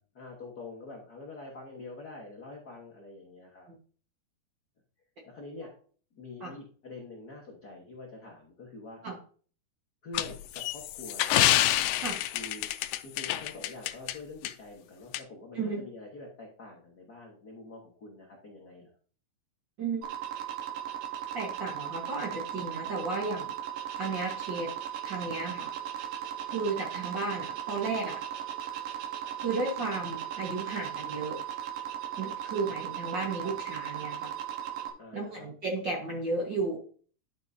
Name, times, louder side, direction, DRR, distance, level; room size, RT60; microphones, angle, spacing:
voice 1, 0.0-3.7 5.2-5.7 6.1-9.0 10.0-11.5 12.3-12.7 13.0-18.9 32.9-33.5 35.0-35.5, left 3 dB, 55° left, -2 dB, 1.0 m, -46 dB
sound 1, 10.1-14.1 14.5-14.6 15.1-15.2, left 14 dB, 85° left, 2.3 m, -27 dB
sound 2, 20.0-34.9, right 10 dB, 80° right, 2.7 m, -37 dB
voice 2, 21.3-23.5 24.0-24.7 25.0-25.7 26.5-28.2 29.4-31.4 32.2-34.3 35.1-36.8, right 3 dB, 50° right, -1 dB, 1.4 m, -33 dB
11.5 x 6.4 x 2.7 m, 0.43 s
omnidirectional pair, 3.9 m